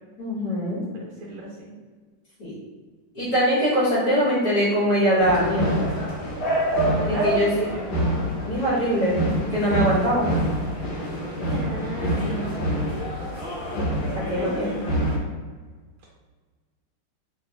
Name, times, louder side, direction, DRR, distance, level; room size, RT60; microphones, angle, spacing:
voice 1, 0.2-0.8 2.4-2.5 3.1-5.9 7.1-7.7 8.4-9.2 9.5-10.3 14.1-14.7, equal, 55° left, -9 dB, 1.3 m, -22 dB
voice 2, 0.9-1.7 6.9-7.9 11.4-12.6 14.3-14.9, right 2 dB, 75° right, -3 dB, 1.4 m, -35 dB
sound 1, 5.2-15.2, right 1 dB, 70° left, 1.4 m, -26 dB
3.1 x 2.8 x 2.7 m, 1.5 s
omnidirectional pair, 2.3 m